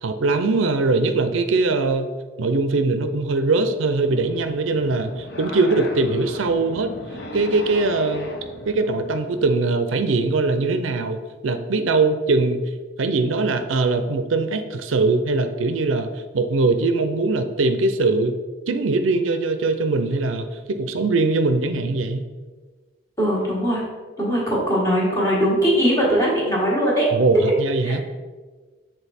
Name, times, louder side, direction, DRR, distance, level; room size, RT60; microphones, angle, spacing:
voice 1, 0.0-2.1 2.4-6.9 7.3-8.3 8.7-12.6 13.0-16.1 16.3-18.4 18.7-22.2 27.1-28.0, right 3 dB, 80° right, 8 dB, 0.5 m, -21 dB
sound 1, 4.0-9.6, left 1 dB, 55° left, 0.8 m, -37 dB
voice 2, 23.2-23.8 24.2-27.1 27.8-27.9, equal, 15° left, -5 dB, 1.6 m, -20 dB
7.0 x 3.7 x 4.2 m, 1.4 s
head